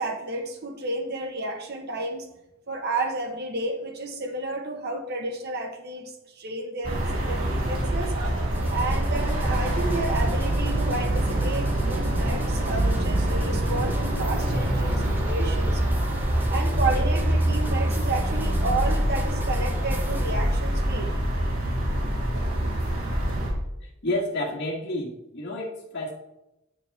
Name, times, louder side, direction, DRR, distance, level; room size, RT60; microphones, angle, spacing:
voice 1, 0.0-2.3 2.7-8.1 8.7-15.8 16.5-21.2, right 2 dB, 50° right, 3 dB, 1.2 m, -31 dB
sound 1, 6.8-23.5, right 1 dB, 80° right, 2.7 m, -25 dB
sound 2, 8.5-20.3, right 1 dB, 10° right, 0.7 m, -37 dB
voice 2, 23.8-26.1, left 1 dB, 55° left, -2 dB, 1.9 m, -30 dB
10.0 x 6.9 x 3.6 m, 0.92 s
head